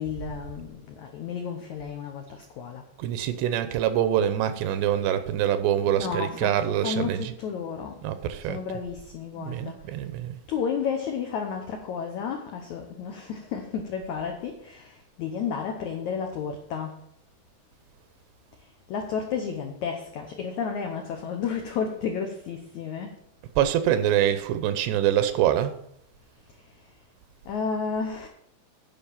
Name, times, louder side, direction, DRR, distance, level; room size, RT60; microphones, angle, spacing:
voice 1, 0.0-2.2 2.6-2.8 5.9-6.5 6.8-7.9 8.5-9.8 10.5-14.9 15.2-17.0 18.9-23.1 27.5-28.3, left 6 dB, 85° left, 1.6 m, -32 dB
voice 2, 3.0-7.3 8.0-8.6 9.3-10.4 23.6-25.7, right 11 dB, 85° right, 2.9 m, -25 dB
10.5 x 5.0 x 7.2 m
omnidirectional pair, 4.7 m